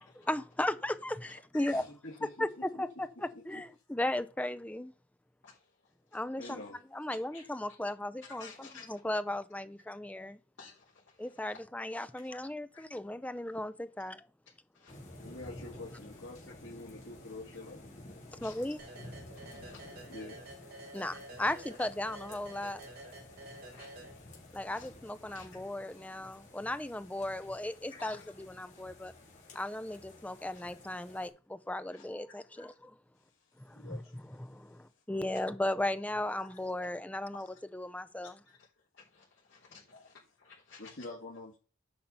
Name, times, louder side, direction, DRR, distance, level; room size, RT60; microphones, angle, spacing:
voice 1, 0.0-1.8 2.4-4.9 6.1-6.6 6.9-10.4 11.2-14.3 18.4-18.8 20.9-22.8 24.5-29.1 29.5-33.0 33.6-37.5 37.7-38.4, left 1 dB, 5° left, 0.5 m, -36 dB
voice 2, 1.7-2.5 2.7-2.8 3.3-3.4 6.4-6.8 15.2-17.8 20.1-20.4 33.2-34.9 39.9-40.1 40.8-41.6, left 2 dB, 80° left, 2.5 m, -47 dB
voice 3, 7.1-7.5 8.3-8.9 10.6-11.3 12.7-12.9 14.7-15.0 18.4-18.7 19.3-20.2 23.7-24.3 24.6-24.9 25.3-25.6 27.9-28.2 29.6-30.0 30.4-30.5 31.9-32.7 36.4-36.5 37.3-37.5 38.2-38.6 38.9-40.9, left 4 dB, 60° left, 4.1 m, -54 dB
sound 1, 14.9-31.3, left 1 dB, 40° left, 3.3 m, -52 dB
sound 2, 18.8-24.6, right 1 dB, 50° right, 3.1 m, -50 dB
8.6 x 5.5 x 5.5 m
head